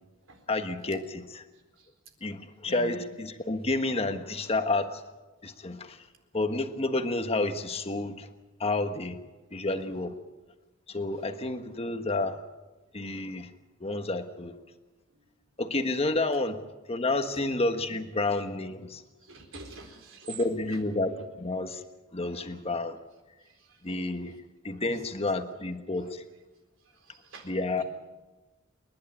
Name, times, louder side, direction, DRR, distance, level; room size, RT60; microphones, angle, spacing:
voice 1, 0.5-1.4 2.2-5.0 5.4-6.0 6.3-8.3 8.6-9.2 9.5-10.1 10.9-12.4 12.9-13.5 13.8-14.6 15.6-16.6 16.9-19.0 20.3-21.8 22.1-23.0 23.8-24.4 24.6-26.2 27.4-27.8, left 2 dB, 30° left, 7 dB, 1.4 m, -30 dB
voice 2, 2.7-3.0 17.9-18.0 19.3-20.4 24.8-25.0 27.1-27.8, right 2 dB, 70° right, 4 dB, 4.1 m, -45 dB
28.5 x 11.5 x 9.5 m, 1.2 s
head